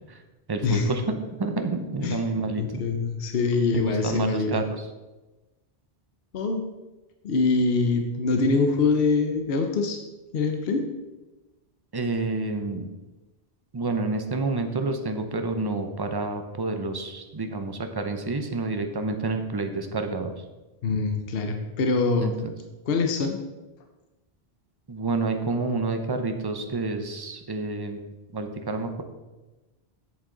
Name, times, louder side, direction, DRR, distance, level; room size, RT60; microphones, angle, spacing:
voice 1, 0.5-2.8 3.7-4.9 11.9-12.8 13.7-20.3 22.2-22.5 24.9-28.0 28.3-29.0, right 3 dB, 25° right, 6 dB, 0.6 m, -29 dB
voice 2, 2.6-4.5 6.3-6.7 7.2-10.0 10.3-10.9 20.8-22.4 22.9-23.4, left 4 dB, 65° left, 5 dB, 1.0 m, -24 dB
8.1 x 7.3 x 3.8 m, 1.1 s
omnidirectional pair, 1.1 m